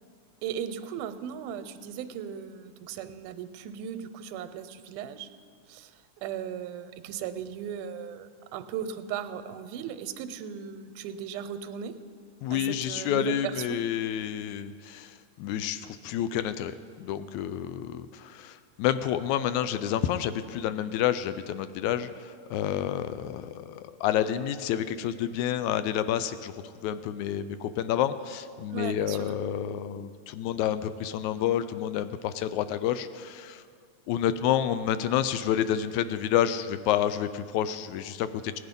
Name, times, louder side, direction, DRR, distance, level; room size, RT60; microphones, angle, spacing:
voice 1, 0.4-5.3 5.7-5.9 6.2-12.0 12.5-13.8 28.7-29.3, right 8 dB, 85° right, 9 dB, 2.1 m, -37 dB
voice 2, 12.4-26.5 26.8-33.6 34.1-38.6, left 10 dB, 80° left, 12 dB, 1.8 m, -29 dB
18.0 x 10.0 x 5.3 m, 2.1 s
omnidirectional pair, 3.6 m